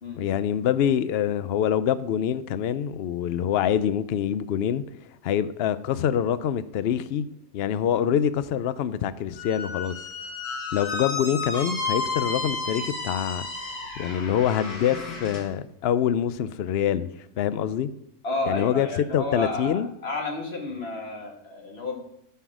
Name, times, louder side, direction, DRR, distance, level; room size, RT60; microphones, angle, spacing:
voice 1, 0.2-4.8 5.2-7.3 7.5-9.9 10.7-13.5 14.0-17.1 17.4-17.9 18.5-19.9, left 9 dB, 90° left, 0.5 m, -25 dB
Squeak, 9.4-15.4, left 3 dB, 70° left, 2.4 m, -32 dB
voice 2, 18.2-22.0, left 2 dB, 40° left, 2.2 m, -31 dB
14.0 x 5.7 x 6.1 m
omnidirectional pair, 1.7 m